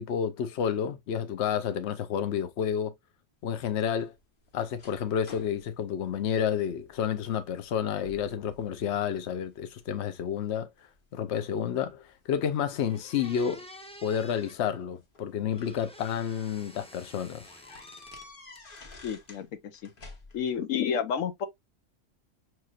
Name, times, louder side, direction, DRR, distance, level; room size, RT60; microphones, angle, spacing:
voice 1, 0.0-2.9 3.4-4.1 4.5-10.7 11.1-13.7 14.0-17.4, left 8 dB, 65° left, 0.9 m, -30 dB
sound 1, 3.5-7.0 7.4-7.7 8.0-8.7 9.1-9.9 10.5-11.9 13.1-13.2 14.4-15.8 16.3-16.5 16.8-16.9 17.4-19.5 19.7-20.6, left 3 dB, 45° left, 1.2 m, -51 dB
sound 2, 12.4-12.5 12.8-14.6 15.5-18.3 18.6-19.3, left 1 dB, 10° left, 0.3 m, -50 dB
voice 2, 19.0-19.5 19.8-19.9 20.3-21.5, left 7 dB, 90° left, 1.1 m, -30 dB
5.8 x 3.2 x 2.3 m
omnidirectional pair, 1.3 m